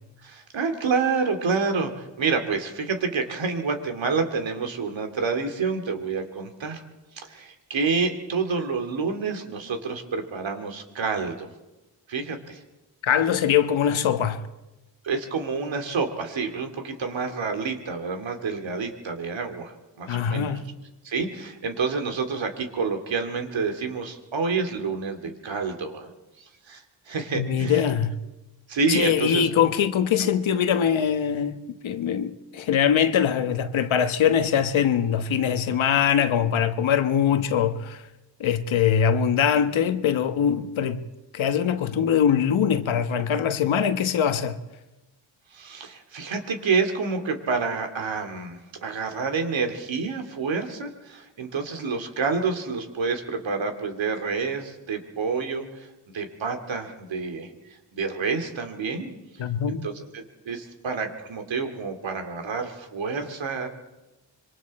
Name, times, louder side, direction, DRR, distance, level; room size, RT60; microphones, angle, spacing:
voice 1, 0.2-6.8 7.2-11.5 12.1-12.6 15.0-20.5 21.0-26.1 26.7-27.8 28.7-29.5 30.2-30.3 45.5-55.9 56.1-57.5 57.9-59.1 59.7-63.7, right 4 dB, 75° right, 2.7 m, -28 dB
voice 2, 13.0-14.5 20.1-20.6 27.3-28.2 28.9-38.0 38.4-41.0 41.3-44.6 59.4-59.9, left 8 dB, 85° left, 1.3 m, -22 dB
26.0 x 23.5 x 4.3 m
cardioid pair, 95°, 46 cm